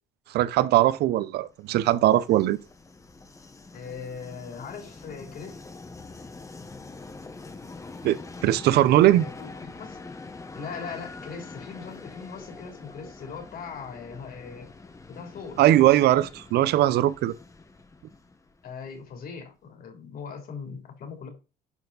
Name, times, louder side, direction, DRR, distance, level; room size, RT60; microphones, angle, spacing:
voice 1, 0.3-2.6 8.0-9.3 15.6-17.3, right 13 dB, 75° right, 0.7 m, -20 dB
Train, 1.5-19.2, left 3 dB, 20° left, 1.1 m, -45 dB
voice 2, 3.7-5.6 9.1-10.0 10.5-14.7 15.1-15.6 18.6-21.3, left 5 dB, 60° left, 3.2 m, -40 dB
11.0 x 4.4 x 4.1 m
cardioid pair, 110°, 17 cm